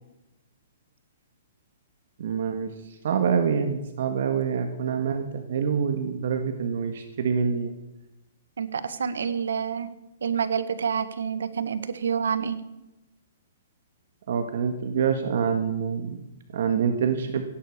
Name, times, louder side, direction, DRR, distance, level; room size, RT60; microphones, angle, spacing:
voice 1, 2.2-2.7 3.0-7.7 14.3-16.2 16.5-17.4, right 6 dB, 65° right, 7 dB, 1.6 m, -26 dB
voice 2, 8.6-9.9 10.2-12.6, right 7 dB, 90° right, 13 dB, 1.3 m, -28 dB
16.5 x 10.5 x 6.6 m, 0.98 s
hypercardioid pair, 155°, 0 cm